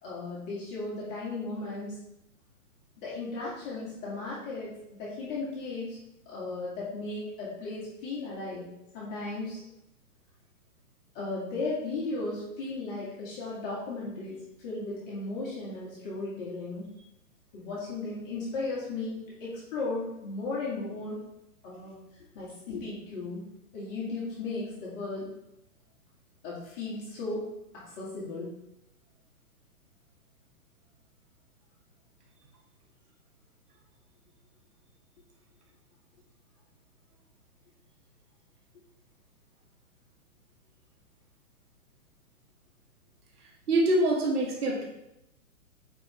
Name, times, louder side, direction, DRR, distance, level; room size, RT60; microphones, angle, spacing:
voice 1, 0.0-2.0 3.0-6.0 6.3-8.6 8.9-9.6 11.1-16.9 17.5-21.2 21.6-23.4 23.7-25.3 26.4-27.5 27.8-28.5, left 3 dB, 30° left, -7 dB, 2.0 m, -36 dB
voice 2, 43.7-44.8, right 1 dB, 90° right, -2 dB, 2.1 m, -24 dB
8.7 x 4.5 x 3.3 m, 0.85 s
hypercardioid pair, 150°, 45 cm